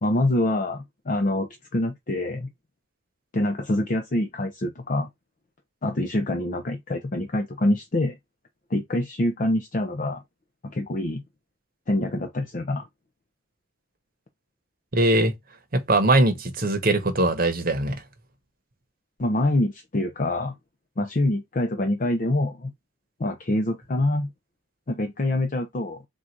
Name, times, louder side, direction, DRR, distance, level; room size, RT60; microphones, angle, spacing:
voice 1, 0.0-2.5 3.3-5.1 5.8-8.2 8.7-10.2 10.6-11.2 11.9-12.8 19.2-20.5 21.0-22.7 23.2-24.3 24.9-26.0, left 1 dB, 40° left, 0.5 m, -25 dB
voice 2, 14.9-15.3 15.7-18.0, right 2 dB, 45° right, 0.9 m, -21 dB
3.9 x 2.5 x 4.4 m
head